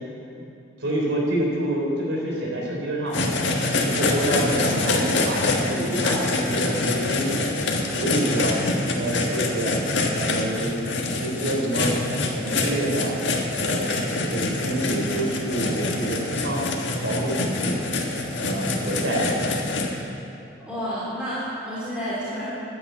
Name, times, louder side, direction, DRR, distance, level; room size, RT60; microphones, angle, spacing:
voice 1, 0.8-3.3 3.7-7.4 8.0-8.5 8.9-9.8 10.1-10.9 11.2-13.1 13.6-16.7 17.0-17.8 18.4-19.5, right 1 dB, 85° right, -2 dB, 3.7 m, -27 dB
sound 1, 3.1-19.8, left 2 dB, 70° left, 1.5 m, -25 dB
voice 2, 20.6-22.4, equal, 5° right, -11 dB, 3.4 m, -30 dB
11.0 x 9.7 x 8.3 m, 2.7 s
head